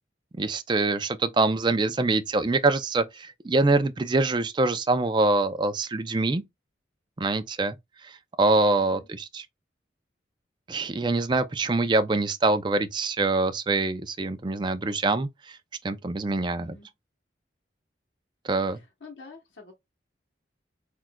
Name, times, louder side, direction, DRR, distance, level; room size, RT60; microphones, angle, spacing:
voice 1, 0.4-6.4 7.2-7.8 8.4-9.4 10.7-15.3 15.8-16.8 18.4-18.8, right 3 dB, 25° right, 0.4 m, -24 dB
voice 2, 8.8-9.1 16.5-16.9 18.6-19.7, left 3 dB, 75° left, 0.9 m, -48 dB
5.9 x 2.4 x 2.2 m
head